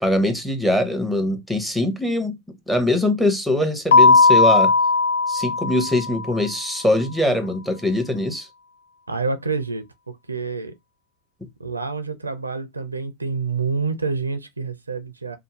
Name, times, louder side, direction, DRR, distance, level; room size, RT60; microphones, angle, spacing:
voice 1, 0.0-2.4 2.7-4.7 5.3-8.5, left 1 dB, ahead, 0.7 m, -22 dB
Keyboard (musical), 3.9-6.5, left 4 dB, 60° left, 0.3 m, -16 dB
voice 2, 9.1-9.8 10.3-10.7 11.6-15.4, right 4 dB, 80° right, 0.4 m, -27 dB
2.6 x 2.0 x 2.9 m
figure-of-eight pair, 90°, 0 cm